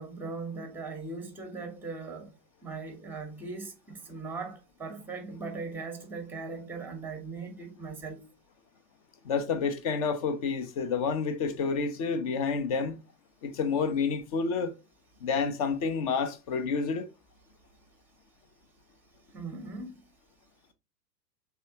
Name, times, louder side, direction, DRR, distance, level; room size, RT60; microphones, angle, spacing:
voice 1, 0.0-2.4 2.6-8.3 19.3-20.0, right 4 dB, 5° right, 0.7 m, -39 dB
voice 2, 9.2-13.0 13.4-14.7 15.2-17.1, left 5 dB, 25° left, 0.4 m, -29 dB
3.4 x 3.4 x 2.7 m
hypercardioid pair, 115°, 49 cm